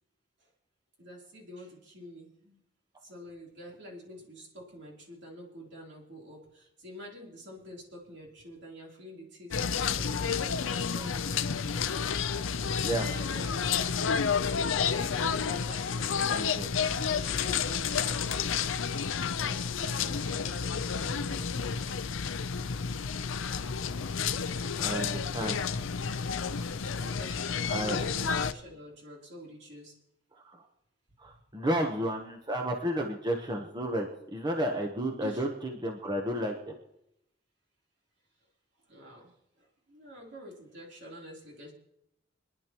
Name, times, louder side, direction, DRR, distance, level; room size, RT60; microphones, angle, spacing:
voice 1, 1.0-2.6 3.0-11.5 12.9-13.9 15.3-16.6 17.1-22.0 24.5-25.6 26.9-29.9 31.2-31.4 35.2-35.5 38.9-41.7, equal, 65° right, -2 dB, 3.5 m, -48 dB
sound 1, 9.5-28.5, left 6 dB, 85° left, 0.6 m, -30 dB
voice 2, 16.3-16.7 24.8-25.7 27.7-28.0 30.3-30.7 31.2-36.7, right 1 dB, 20° right, 2 dB, 1.0 m, -32 dB
25.5 x 10.5 x 3.0 m, 0.81 s
head